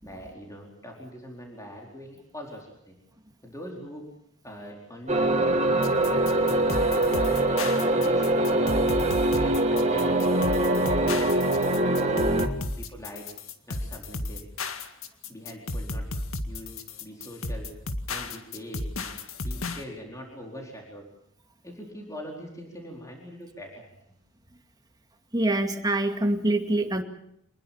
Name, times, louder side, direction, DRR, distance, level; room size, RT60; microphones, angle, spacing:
voice 1, 0.0-3.0 3.4-4.1 4.4-5.6 6.0-7.3 8.0-8.7 9.3-12.0 12.4-13.3 13.7-14.4 15.3-16.1 16.5-17.7 18.1-19.2 19.4-21.0 21.6-23.9, equal, 15° left, 0 dB, 4.4 m, -43 dB
sound 1, 5.1-12.5, right 1 dB, 35° right, 2.6 m, -23 dB
sound 2, 5.8-19.8, left 2 dB, 80° left, 2.1 m, -33 dB
voice 2, 25.3-27.0, right 1 dB, 20° right, 5 dB, 2.3 m, -25 dB
26.0 x 20.5 x 7.2 m, 0.72 s
head